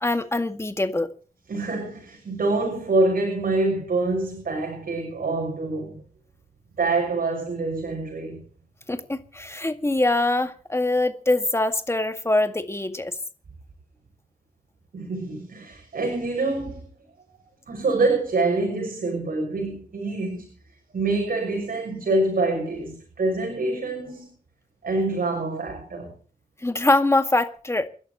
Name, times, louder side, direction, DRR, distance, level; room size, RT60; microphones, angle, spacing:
voice 1, 0.0-1.1 8.9-13.1 26.6-27.9, left 2 dB, 20° left, 1.9 m, -23 dB
voice 2, 1.5-6.0 6.8-8.4 14.9-16.9 17.7-20.5 20.9-24.3 24.8-26.1, right 2 dB, 75° right, 6.5 m, -26 dB
29.0 x 11.5 x 3.0 m
wide cardioid pair, 105°, 15 cm